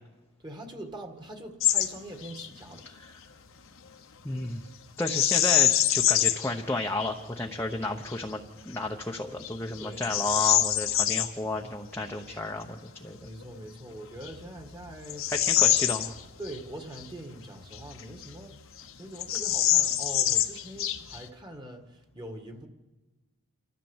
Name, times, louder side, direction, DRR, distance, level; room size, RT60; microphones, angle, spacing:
voice 1, 0.4-2.9 9.8-10.5 13.2-15.3 15.6-16.0 16.4-18.6 19.0-22.7, right 1 dB, 20° right, 4 dB, 1.9 m, -43 dB
Bird vocalization bird call bird song, 1.6-1.9 2.2-2.5 5.0-6.5 7.1-7.2 7.8-8.2 8.7-8.9 9.4-11.3 13.4-13.5 14.2-16.6 16.9-17.0 17.7-18.5 18.8-18.9 19.2-21.3, left 12 dB, 60° left, 1.1 m, -25 dB
voice 2, 4.2-4.6 5.0-13.2 15.4-16.1, left 2 dB, 10° left, 0 dB, 0.9 m, -32 dB
28.0 x 14.0 x 7.3 m, 1.2 s
head